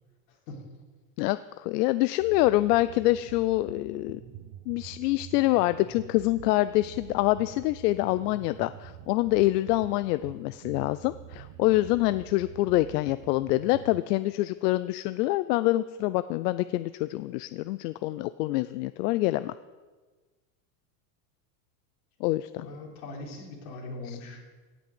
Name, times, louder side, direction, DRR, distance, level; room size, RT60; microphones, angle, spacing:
voice 1, 0.3-0.6 22.6-24.4, left 2 dB, 60° left, -1 dB, 3.9 m, -41 dB
voice 2, 1.2-4.2 4.7-19.5 22.2-22.7 24.1-24.2, left 17 dB, 85° left, 14 dB, 0.6 m, -26 dB
sound 1, 2.2-14.0, right 11 dB, 50° right, 0.9 m, -46 dB
17.0 x 6.2 x 7.8 m, 1.3 s
cardioid pair, 180°, 46 cm